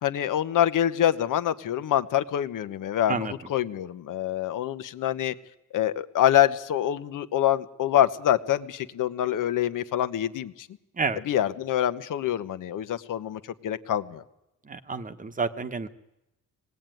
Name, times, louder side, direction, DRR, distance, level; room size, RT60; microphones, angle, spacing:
voice 1, 0.0-5.3 5.7-10.7 11.3-14.2, left 11 dB, 65° left, 11 dB, 1.3 m, -25 dB
voice 2, 14.6-15.9, right 4 dB, 25° right, 10 dB, 1.1 m, -29 dB
26.5 x 19.5 x 9.3 m, 0.91 s
cardioid pair, 150°, 34 cm